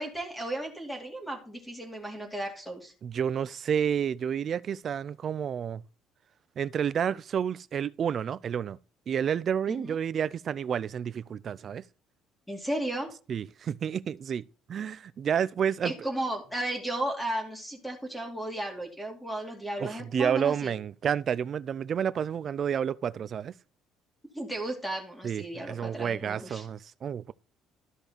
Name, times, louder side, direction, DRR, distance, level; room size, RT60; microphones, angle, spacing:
voice 1, 0.0-2.9 9.7-9.9 12.5-13.1 15.8-20.7 24.3-26.6, right 1 dB, 5° left, 2.6 m, -34 dB
voice 2, 3.0-5.8 6.6-8.8 9.1-11.8 13.3-16.1 19.8-23.5 25.2-27.3, right 8 dB, 40° right, 0.4 m, -30 dB
12.5 x 5.4 x 4.2 m
cardioid pair, 150°, 0 cm